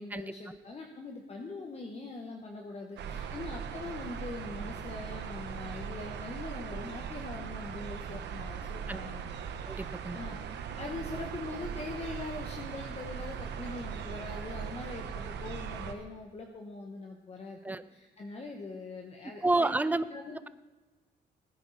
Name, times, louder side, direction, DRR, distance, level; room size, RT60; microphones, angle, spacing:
voice 1, 0.0-9.2 9.6-10.4 10.8-19.8 20.1-20.4, left 3 dB, 35° left, 1 dB, 1.4 m, -42 dB
sound 1, 3.0-15.9, right 7 dB, 85° right, 1.1 m, -39 dB
voice 2, 9.7-10.2 17.6-17.8 19.4-20.0, right 2 dB, 10° right, 14 dB, 0.5 m, -29 dB
18.5 x 10.0 x 4.2 m, 1.2 s
cardioid pair, 110°, 17 cm